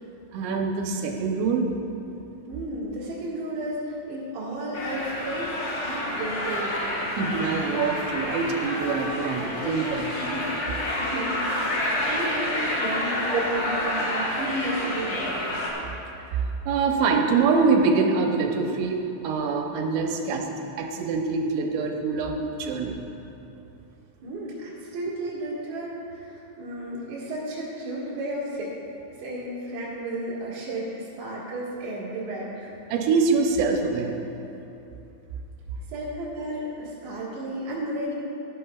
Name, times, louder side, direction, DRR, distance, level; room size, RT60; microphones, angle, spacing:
voice 1, 0.3-1.7 7.2-10.1 13.3-13.4 16.3-19.0 19.2-20.5 20.8-23.0 32.9-34.2, right 4 dB, 80° right, 2 dB, 3.1 m, -24 dB
voice 2, 2.5-5.6 5.8-6.8 10.2-10.5 10.9-15.4 24.2-28.7 29.1-32.7 35.9-38.1, right 1 dB, 55° right, -9 dB, 2.6 m, -33 dB
sound 1, 4.7-15.7, left 1 dB, 60° left, 1.4 m, -29 dB
17.0 x 11.0 x 2.3 m, 2.9 s
omnidirectional pair, 5.1 m